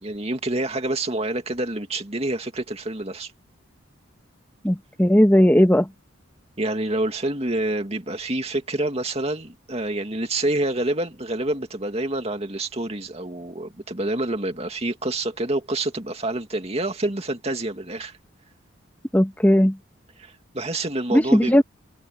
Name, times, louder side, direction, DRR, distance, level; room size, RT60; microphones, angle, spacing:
voice 1, 0.0-3.3 6.6-18.2 20.2-21.6, right 2 dB, 30° right, 2.4 m, -27 dB
voice 2, 4.6-5.9 19.1-19.8 21.1-21.6, equal, 10° left, 1.2 m, -17 dB
head